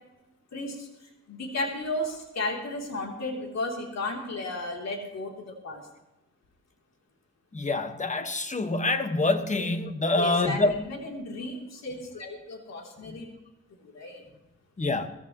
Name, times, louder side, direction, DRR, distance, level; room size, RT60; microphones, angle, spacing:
voice 1, 0.5-5.8 10.1-13.3 13.8-14.2, left 2 dB, 60° left, 0 dB, 3.2 m, -34 dB
voice 2, 7.5-10.8 13.1-13.2 14.8-15.1, left 2 dB, 25° left, 8 dB, 1.4 m, -26 dB
20.0 x 14.5 x 3.1 m, 0.98 s
cardioid pair, 90°, 30 cm